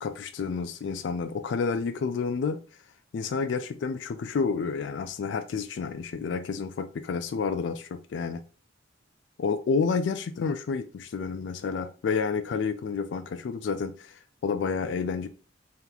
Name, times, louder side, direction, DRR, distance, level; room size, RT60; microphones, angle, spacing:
voice 1, 0.0-2.6 3.1-8.4 9.4-15.3, left 5 dB, 70° left, 0.3 m, -30 dB
3.3 x 2.9 x 3.9 m
head